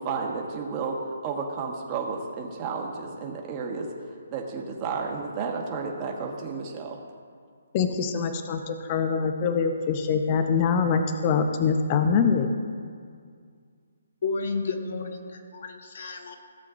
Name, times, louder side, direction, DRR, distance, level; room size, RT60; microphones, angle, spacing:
voice 1, 0.0-3.9 4.3-7.0, right 5 dB, 25° right, 0 dB, 1.4 m, -32 dB
voice 2, 7.7-12.5, left 6 dB, 30° left, 7 dB, 0.7 m, -24 dB
voice 3, 14.2-15.2 15.5-16.3, left 4 dB, 55° left, 3 dB, 1.5 m, -31 dB
16.5 x 7.6 x 2.5 m, 2.1 s
hypercardioid pair, 155°, 0 cm